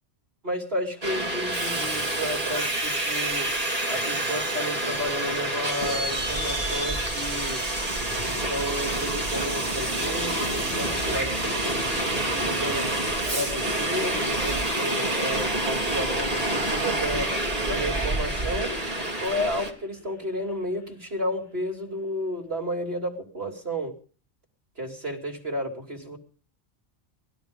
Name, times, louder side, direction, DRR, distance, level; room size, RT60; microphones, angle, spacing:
voice 1, 0.4-3.5 3.9-7.6 8.2-12.9 13.3-17.3 17.6-18.8 19.2-23.9 24.8-26.2, equal, 55° right, 3 dB, 3.4 m, -32 dB
Subway metro underground, 1.0-19.7, right 1 dB, 30° right, 3.1 m, -27 dB
sound 1, 9.9-20.9, left 2 dB, 55° left, 6.6 m, -44 dB
20.5 x 13.0 x 5.3 m, 0.42 s
omnidirectional pair, 1.2 m